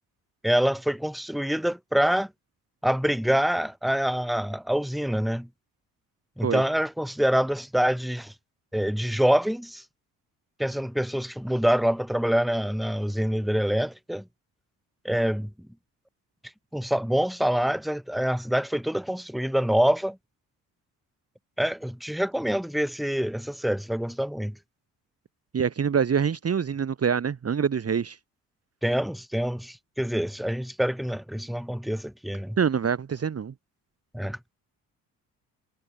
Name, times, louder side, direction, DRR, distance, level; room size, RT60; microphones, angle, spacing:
voice 1, 0.4-2.3 2.8-5.5 6.4-8.3 8.7-9.8 10.6-14.2 15.0-15.5 16.7-20.2 21.6-24.6 28.8-32.6 34.1-34.4, equal, ahead, 1.8 m, -26 dB
voice 2, 25.5-28.2 32.6-33.5, right 7 dB, 35° right, 1.3 m, -25 dB
hypercardioid pair, 50°, 42 cm